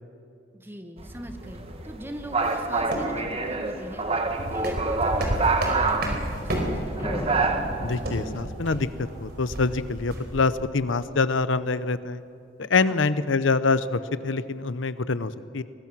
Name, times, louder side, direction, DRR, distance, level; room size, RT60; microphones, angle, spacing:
voice 1, 0.5-4.0 4.3-6.7 7.0-7.1 12.9-13.0, right 1 dB, 10° right, 7 dB, 1.4 m, -41 dB
sound 1, 1.0-8.4, right 3 dB, 30° right, 1.5 m, -27 dB
sound 2, 1.4-10.6, equal, 55° right, 4.5 m, -33 dB
sound 3, 7.0-9.2, left 1 dB, 20° left, 1.0 m, -36 dB
voice 2, 7.8-12.2 12.6-15.6, left 4 dB, 90° left, 14 dB, 0.8 m, -25 dB
23.5 x 20.0 x 6.2 m, 2.5 s
head